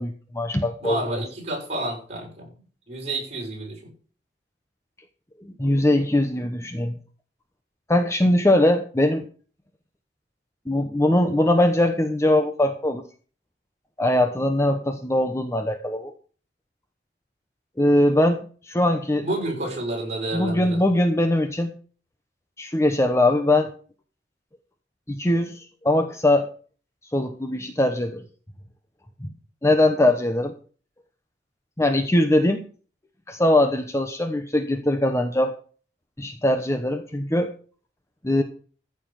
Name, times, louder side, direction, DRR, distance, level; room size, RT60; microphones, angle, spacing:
voice 1, 0.0-1.0 5.4-6.9 7.9-9.2 10.7-13.0 14.0-16.1 17.8-18.4 18.7-19.3 20.3-21.7 22.6-23.7 25.1-26.5 27.1-28.2 29.2-29.3 29.6-30.5 31.8-32.6 33.3-35.5 36.2-37.5 38.2-38.4, left 1 dB, 15° left, 6 dB, 1.0 m, -21 dB
voice 2, 0.8-2.5 2.9-3.9 19.2-21.0, right 2 dB, 40° right, -1 dB, 6.3 m, -30 dB
14.5 x 6.9 x 5.7 m, 0.41 s
head